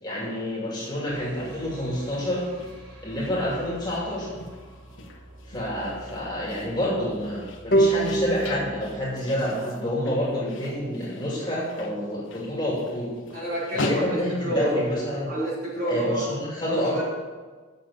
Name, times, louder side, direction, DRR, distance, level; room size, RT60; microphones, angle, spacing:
voice 1, 0.0-2.4 3.0-4.3 5.5-13.1 13.7-15.3 15.9-17.0, left 1 dB, 20° left, -5 dB, 2.7 m, -28 dB
sound 1, 0.7-15.2, left 2 dB, 75° left, 1.1 m, -41 dB
sound 2, 1.1-10.2, right 1 dB, 70° right, 3.3 m, -47 dB
sound 3, 7.7-11.0, right 2 dB, 50° left, 1.0 m, -27 dB
voice 2, 13.3-14.7 15.3-16.3 16.7-17.0, right 1 dB, 45° right, -7 dB, 3.6 m, -29 dB
7.6 x 7.0 x 7.3 m, 1.4 s
head